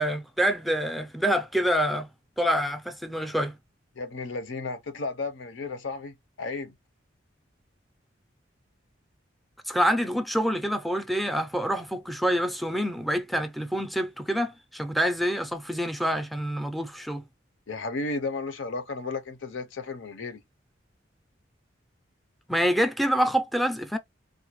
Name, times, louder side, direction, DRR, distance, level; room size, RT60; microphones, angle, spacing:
voice 1, 0.0-2.1 2.4-3.6 9.7-17.2 22.5-24.0, equal, ahead, 0.4 m, -26 dB
voice 2, 3.9-6.7 17.7-20.4, left 3 dB, 80° left, 0.7 m, -33 dB
3.8 x 2.2 x 2.9 m
head